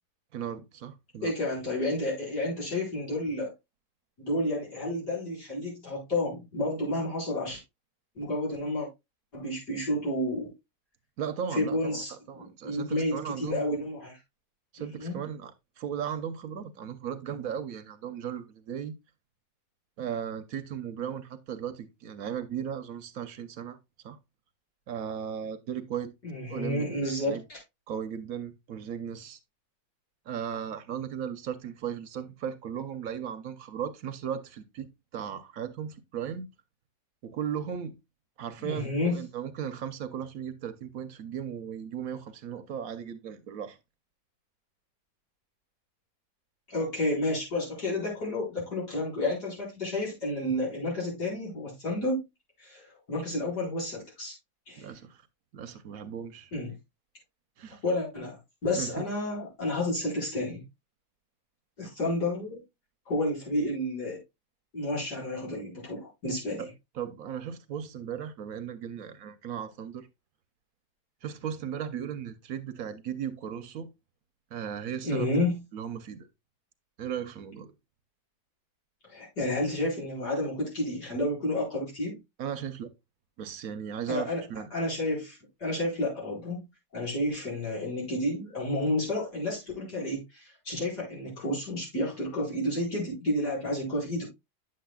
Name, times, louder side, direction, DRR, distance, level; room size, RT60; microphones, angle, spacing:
voice 1, 0.3-1.3 11.2-13.6 14.7-18.9 20.0-23.8 24.0-24.2 24.9-26.1 26.5-26.9 27.3-27.4 27.9-29.4 30.3-36.5 37.2-38.0 38.4-43.8 54.8-55.2 55.5-56.5 57.6-57.8 58.8-59.1 66.6-66.7 66.9-70.1 71.2-73.9 74.5-76.3 77.0-77.7 82.4-82.9 83.4-84.7, right 8 dB, 65° right, 1.1 m, -36 dB
voice 2, 1.2-3.5 4.2-7.6 8.2-8.9 9.3-10.5 11.5-14.2 15.0-15.2 26.2-27.6 38.6-39.2 46.7-52.2 52.6-54.4 54.7-54.9 56.5-56.7 57.8-60.6 61.8-62.6 63.1-64.2 64.7-66.7 75.0-75.6 79.1-82.2 84.1-84.4 84.7-86.6 86.9-94.3, left 1 dB, 85° left, 5.4 m, -31 dB
9.2 x 7.6 x 2.2 m
omnidirectional pair, 1.7 m